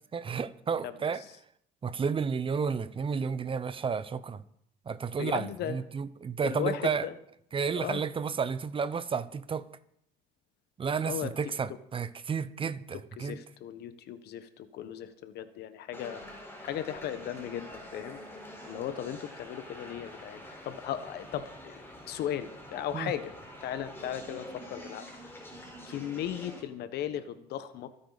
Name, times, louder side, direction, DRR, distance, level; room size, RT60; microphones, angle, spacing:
voice 1, 0.1-1.2 1.8-4.4 4.9-7.0 7.5-9.7 10.8-13.4 22.9-23.1, right 6 dB, 30° right, 0.8 m, -32 dB
voice 2, 5.2-5.8 6.4-7.2 7.7-8.0 11.0-11.3 13.2-16.2 16.6-18.2 18.6-23.3 23.6-25.3 25.9-27.9, left 10 dB, 75° left, 1.3 m, -36 dB
sound 1, 15.9-26.6, left 1 dB, 15° left, 4.6 m, -46 dB
25.5 x 9.5 x 4.1 m
cardioid pair, 110°, 17 cm